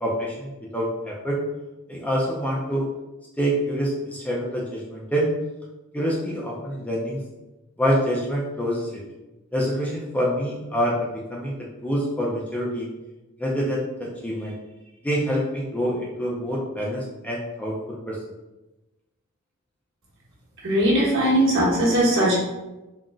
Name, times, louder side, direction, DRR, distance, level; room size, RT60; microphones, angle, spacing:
voice 1, 0.0-1.4 1.9-2.9 3.4-5.3 5.9-7.2 7.8-9.0 9.5-11.6 11.8-12.9 13.4-14.6 15.0-18.2, equal, 5° left, -4 dB, 0.4 m, -26 dB
voice 2, 20.6-22.3, right 1 dB, 60° right, -6 dB, 1.1 m, -19 dB
3.7 x 2.1 x 2.4 m, 1.0 s
head